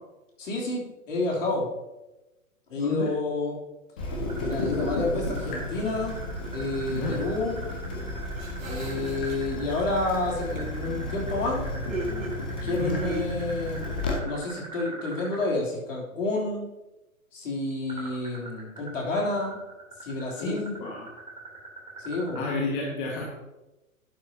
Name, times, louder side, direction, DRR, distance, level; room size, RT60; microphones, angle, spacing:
voice 1, 0.4-1.7 2.7-3.6 4.4-6.2 6.5-7.6 8.7-11.6 12.6-13.9 14.2-16.7 17.3-19.6 20.0-20.8 22.0-22.4, left 2 dB, 60° left, -3 dB, 3.5 m, -29 dB
voice 2, 2.8-3.1 6.9-7.2 12.8-13.0 20.4-21.1 22.3-23.3, left 3 dB, 35° left, -2 dB, 1.9 m, -30 dB
Water tap faucet / Drip, 4.0-14.1, left 2 dB, 10° left, 0.3 m, -33 dB
sound 1, 4.3-15.5 17.9-22.5, right 3 dB, 15° right, 3.4 m, -42 dB
sound 2, 8.0-9.7 10.1-11.1 11.9-13.3, right 1 dB, 65° right, 1.8 m, -38 dB
11.5 x 9.1 x 2.9 m, 1.0 s
figure-of-eight pair, 115°, 42 cm